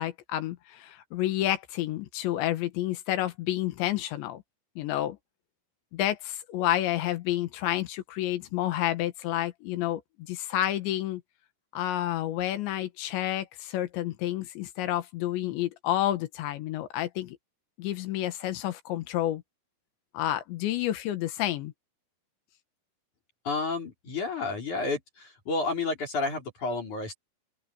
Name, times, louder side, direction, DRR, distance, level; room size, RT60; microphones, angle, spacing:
voice 1, 0.0-4.4 4.8-5.2 5.9-11.2 11.7-17.4 17.8-19.4 20.1-21.7, left 13 dB, 75° left, 3.6 m, -30 dB
voice 2, 23.4-27.1, left 3 dB, 40° left, 5.6 m, -31 dB
open air
omnidirectional pair, 5.3 m